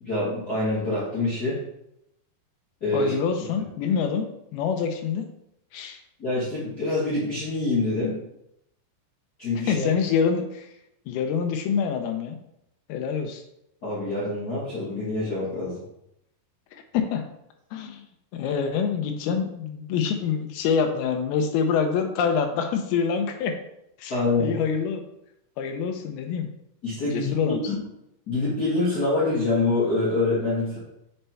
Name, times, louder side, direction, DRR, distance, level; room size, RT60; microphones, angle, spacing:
voice 1, 0.0-1.6 2.8-3.1 6.2-8.2 9.4-9.9 13.8-15.8 24.1-24.5 26.8-27.3 27.6-27.8 28.3-30.8, left 2 dB, 65° left, -9 dB, 0.9 m, -25 dB
voice 2, 2.9-4.3 4.5-5.2 5.7-6.0 9.5-10.7 11.1-12.4 12.9-13.4 16.7-17.2 17.7-18.0 18.3-23.5 24.0-25.0 25.6-26.5 27.0-27.6, left 6 dB, 80° left, 5 dB, 2.4 m, -26 dB
6.7 x 4.4 x 4.4 m, 0.82 s
omnidirectional pair, 4.8 m